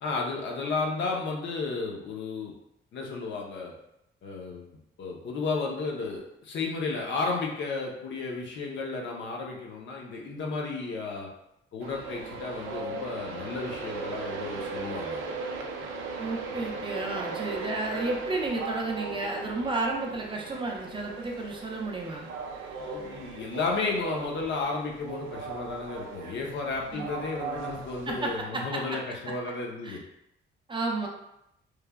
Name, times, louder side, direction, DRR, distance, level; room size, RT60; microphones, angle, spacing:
voice 1, 0.0-2.5 2.9-3.7 4.2-4.7 5.0-11.3 11.7-15.2 22.8-30.0, left 3 dB, 65° left, -1 dB, 0.7 m, -33 dB
Train, 11.8-28.4, right 4 dB, 90° right, 0.4 m, -38 dB
voice 2, 16.2-22.3 26.9-27.0 28.1-28.8 29.8-30.0 30.7-31.1, right 2 dB, 25° right, 0 dB, 0.5 m, -32 dB
3.1 x 2.3 x 2.2 m, 0.81 s
cardioid pair, 90°, 20 cm